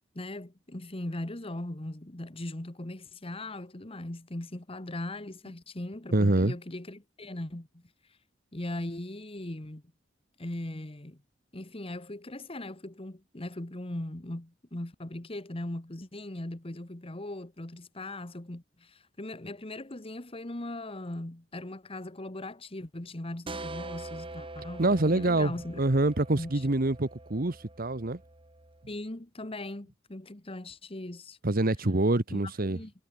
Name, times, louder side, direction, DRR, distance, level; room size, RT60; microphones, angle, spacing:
voice 1, 0.1-7.8 8.5-9.8 10.4-11.2 11.5-25.8 26.4-26.5 28.9-31.4 32.3-32.9, left 1 dB, 30° left, 1.5 m, -39 dB
voice 2, 6.1-6.5 24.8-28.2 31.4-32.8, right 2 dB, 50° right, 1.3 m, -26 dB
sound 1, 23.5-28.9, right 2 dB, 30° right, 2.3 m, -44 dB
head